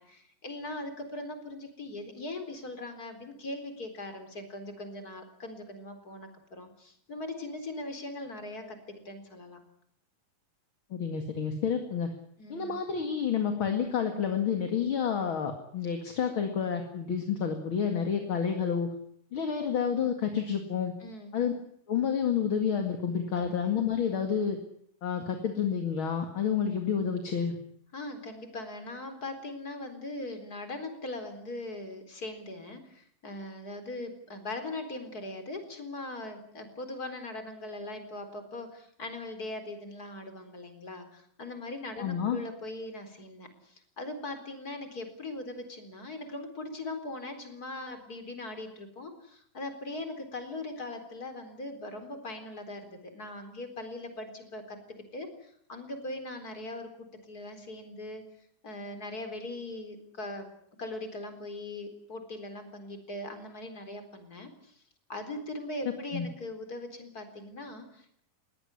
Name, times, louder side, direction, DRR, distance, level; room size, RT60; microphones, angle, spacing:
voice 1, 0.0-9.6 12.4-12.8 21.0-21.3 23.3-23.5 27.9-54.8 55.1-58.2 58.6-60.5 60.8-64.7 65.1-68.2, left 2 dB, 25° left, 7 dB, 4.2 m, -40 dB
voice 2, 10.9-12.1 12.5-18.9 19.3-20.9 21.3-21.5 21.9-24.6 25.0-27.6 42.0-42.4 66.1-66.3, left 7 dB, 40° left, 5 dB, 2.4 m, -29 dB
21.5 x 18.0 x 9.9 m, 0.68 s
omnidirectional pair, 4.2 m